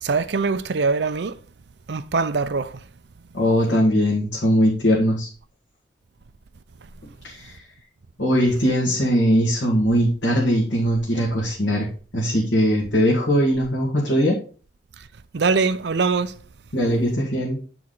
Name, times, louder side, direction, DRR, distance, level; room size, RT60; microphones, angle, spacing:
voice 1, 0.0-1.4 1.9-2.8 15.0-15.1 15.3-16.4, right 4 dB, 65° right, 0.5 m, -23 dB
voice 2, 3.3-5.3 7.2-7.6 8.2-11.9 12.1-14.4 16.7-17.6, equal, 75° left, 2.1 m, -20 dB
9.6 x 4.7 x 3.9 m
head